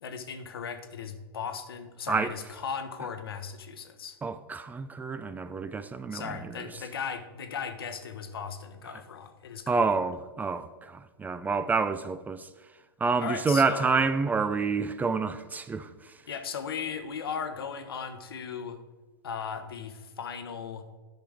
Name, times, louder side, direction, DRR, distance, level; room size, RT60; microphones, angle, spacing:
voice 1, 0.0-4.2 6.1-9.8 13.2-14.0 16.3-18.8 19.2-20.9, left 6 dB, 70° left, 0.9 m, -37 dB
voice 2, 4.2-6.7 9.7-12.5 13.0-16.1, right 4 dB, 15° right, 0.4 m, -28 dB
10.5 x 6.0 x 3.4 m
figure-of-eight pair, 100°, 13 cm